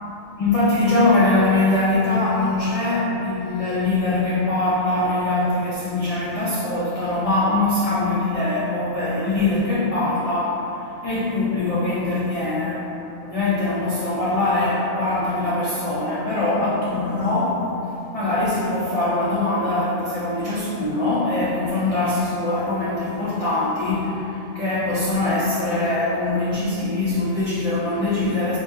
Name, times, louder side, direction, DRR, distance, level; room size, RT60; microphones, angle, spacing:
voice 1, 0.4-12.9 13.2-17.7 18.1-28.6, left 2 dB, 65° left, -9 dB, 0.3 m, -22 dB
4.4 x 3.0 x 2.3 m, 2.9 s
omnidirectional pair, 1.4 m